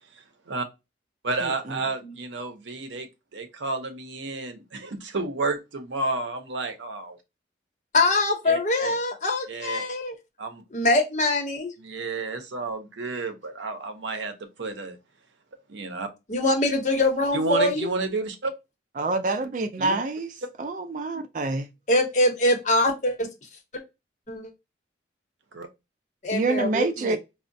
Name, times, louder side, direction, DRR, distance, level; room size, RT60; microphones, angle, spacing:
voice 1, 0.1-0.7 1.2-7.2 8.5-9.0 9.5-9.8 10.4-10.6 11.8-15.0 15.7-16.1 17.3-18.5 19.8-20.0 25.5-25.7, right 3 dB, 80° right, 0.7 m, -31 dB
voice 2, 1.4-1.7 19.0-20.3 20.6-21.7 26.3-27.2, right 3 dB, 45° right, 0.3 m, -27 dB
voice 3, 7.9-10.1 10.7-11.7 16.3-17.9 21.9-23.3 24.3-24.5 26.2-27.2, left 2 dB, 40° left, 0.8 m, -23 dB
4.7 x 2.1 x 2.6 m
head